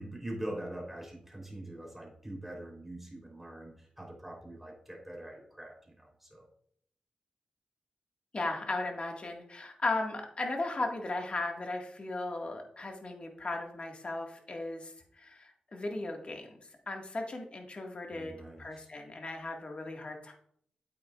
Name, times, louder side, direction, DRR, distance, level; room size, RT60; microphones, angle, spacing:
voice 1, 0.0-6.5 18.1-18.9, right 1 dB, 5° right, -1 dB, 3.6 m, -43 dB
voice 2, 8.3-16.6 16.9-20.3, left 2 dB, 45° left, 2 dB, 1.8 m, -36 dB
9.0 x 8.6 x 2.5 m, 0.63 s
wide cardioid pair, 80°, 3 cm